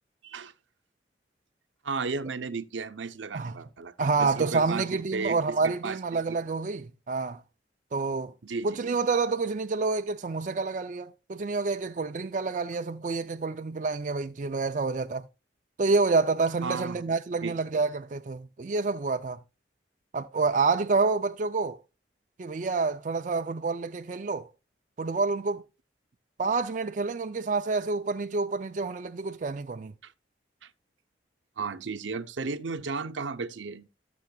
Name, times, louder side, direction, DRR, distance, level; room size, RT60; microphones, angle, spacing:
voice 1, 1.8-6.4 8.4-8.8 16.6-17.0 17.4-17.6 30.0-30.1 30.6-30.7 31.6-33.9, right 4 dB, 85° right, 0.7 m, -34 dB
voice 2, 4.0-7.4 7.9-8.3 8.6-15.3 15.8-19.4 20.1-21.8 22.4-24.5 25.0-25.6 26.4-29.9, right 4 dB, 45° right, 0.4 m, -28 dB
14.5 x 7.0 x 2.3 m
head